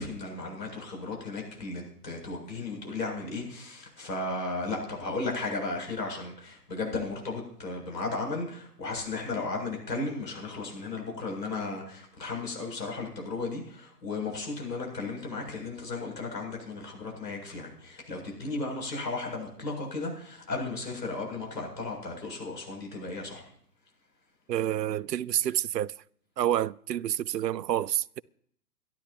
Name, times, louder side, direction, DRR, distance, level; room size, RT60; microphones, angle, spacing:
voice 1, 0.0-23.4, left 3 dB, 80° left, 7.8 m, -35 dB
voice 2, 24.5-25.9 26.4-28.2, right 11 dB, 75° right, 0.6 m, -28 dB
25.0 x 12.0 x 3.0 m
hypercardioid pair, 140°, 49 cm